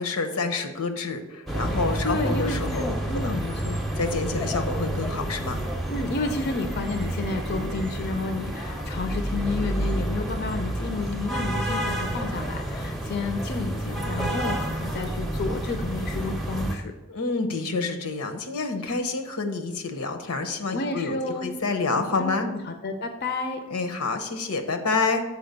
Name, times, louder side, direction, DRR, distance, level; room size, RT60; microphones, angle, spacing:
voice 1, 0.0-2.9 3.1-3.4 4.0-5.6 17.1-22.5 23.7-25.2, left 3 dB, 85° left, 6 dB, 0.9 m, -28 dB
sound 1, 1.5-16.8, right 1 dB, ahead, 0.6 m, -29 dB
voice 2, 2.0-3.8 5.9-16.9 20.7-21.6 22.2-23.6, left 2 dB, 45° left, 6 dB, 0.5 m, -31 dB
6.8 x 4.9 x 5.2 m, 1.1 s
head